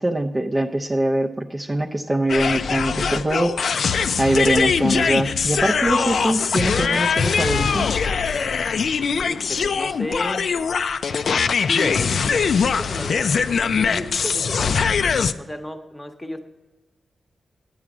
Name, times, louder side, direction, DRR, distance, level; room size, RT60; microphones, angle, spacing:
voice 1, 0.0-3.5 4.2-7.9, right 1 dB, 20° right, 1 dB, 0.5 m, -22 dB
sound 1, 2.3-15.3, left 6 dB, 65° left, 0.4 m, -22 dB
voice 2, 9.2-10.5 11.7-15.0 15.4-16.4, left 1 dB, 10° left, 6 dB, 0.9 m, -33 dB
10.0 x 8.6 x 6.0 m, 1.2 s
wide cardioid pair, 140°, 0 cm